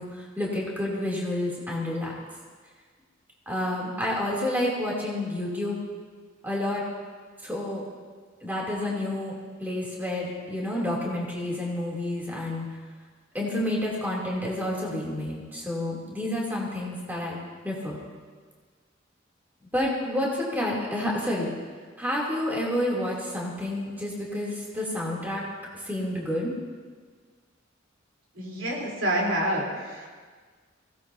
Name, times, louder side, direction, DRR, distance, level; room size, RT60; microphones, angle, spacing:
voice 1, 0.0-2.1 3.5-5.8 6.4-6.8 7.4-7.8 8.4-12.7 13.3-17.4 17.6-18.0 19.7-21.5 22.0-25.4 25.7-26.5, left 1 dB, 10° right, -4 dB, 2.9 m, -29 dB
voice 2, 28.4-30.1, right 1 dB, 75° right, -3 dB, 3.6 m, -28 dB
23.5 x 17.0 x 2.8 m, 1.6 s
head